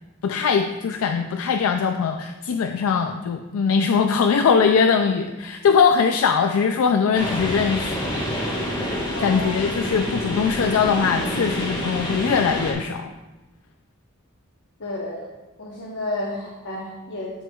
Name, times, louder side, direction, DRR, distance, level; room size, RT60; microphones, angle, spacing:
voice 1, 0.2-8.0 9.2-13.1, left 6 dB, 75° left, 6 dB, 0.4 m, -21 dB
sound 1, 7.1-12.7, equal, 20° left, 1.4 m, -27 dB
voice 2, 9.1-9.5 14.8-15.2 15.6-17.3, left 1 dB, 60° left, -3 dB, 1.0 m, -31 dB
12.0 x 4.4 x 2.3 m, 1.1 s
head